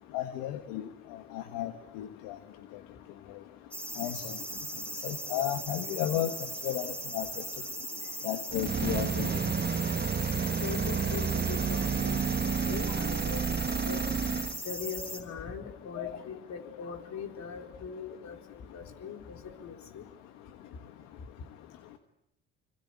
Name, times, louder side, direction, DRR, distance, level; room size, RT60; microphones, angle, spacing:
voice 1, 0.1-0.8 1.3-1.7 2.0-2.3 4.0-4.2 5.0-6.3 6.6-6.9 7.1-7.2 8.2-9.3 16.0-16.1, left 13 dB, 85° left, 8 dB, 1.4 m, -32 dB
sound 1, 3.7-15.2, equal, 5° left, 6.1 m, -39 dB
sound 2, 8.5-14.6, right 6 dB, 30° right, 1.1 m, -30 dB
voice 2, 10.6-14.0 14.6-18.4 18.7-20.0, left 6 dB, 60° left, 4 dB, 4.1 m, -41 dB
25.5 x 25.5 x 8.6 m, 0.86 s
supercardioid pair, 60°, 31 cm